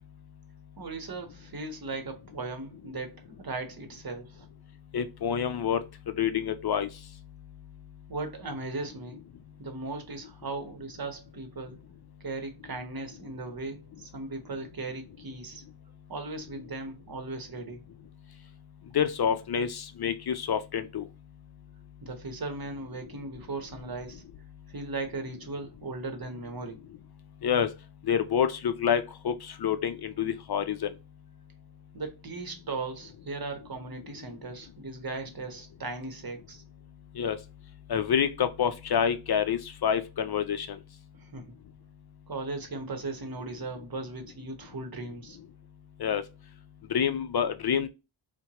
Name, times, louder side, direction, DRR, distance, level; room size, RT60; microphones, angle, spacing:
voice 1, 0.8-4.5 8.1-9.2 9.6-11.8 12.2-15.6 16.1-17.8 22.0-24.2 24.7-26.8 31.9-36.6 41.2-41.5 42.3-45.4, right 3 dB, 50° right, 0.9 m, -37 dB
voice 2, 4.9-5.9 6.2-6.9 18.9-21.1 27.4-27.7 28.1-30.9 37.2-37.4 37.9-40.8 46.0-46.2 46.9-47.9, left 8 dB, 55° left, 0.5 m, -27 dB
4.4 x 2.2 x 2.8 m
wide cardioid pair, 65°, 47 cm